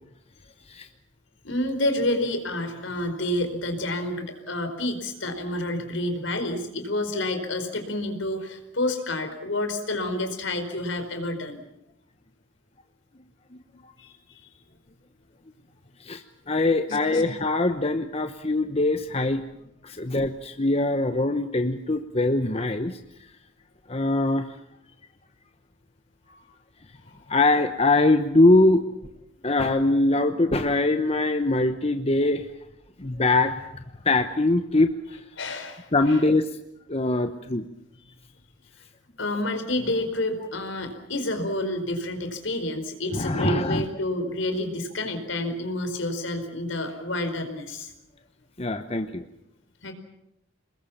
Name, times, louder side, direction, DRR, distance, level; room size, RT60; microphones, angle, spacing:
voice 1, 1.4-11.6 14.0-14.4 16.9-17.2 26.3-26.4 35.4-35.9 39.2-47.9 49.8-49.9, left 1 dB, 70° left, 7 dB, 4.7 m, -29 dB
voice 2, 16.0-19.4 19.8-23.0 23.9-24.6 27.3-28.8 29.4-32.5 33.0-35.2 35.9-36.6 36.9-37.6 43.1-43.9 48.6-49.3, left 2 dB, 30° left, 8 dB, 1.0 m, -23 dB
28.0 x 21.0 x 7.3 m, 0.81 s
head